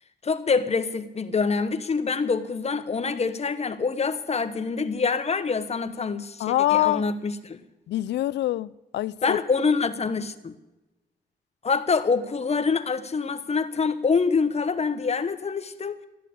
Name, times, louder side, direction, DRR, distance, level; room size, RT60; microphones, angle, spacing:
voice 1, 0.2-7.6 9.2-10.5 11.6-16.0, left 5 dB, 35° left, 1.2 m, -25 dB
voice 2, 6.4-7.0 7.9-9.4, left 14 dB, 90° left, 0.5 m, -24 dB
13.5 x 11.0 x 8.4 m
cardioid pair, 90°, 18 cm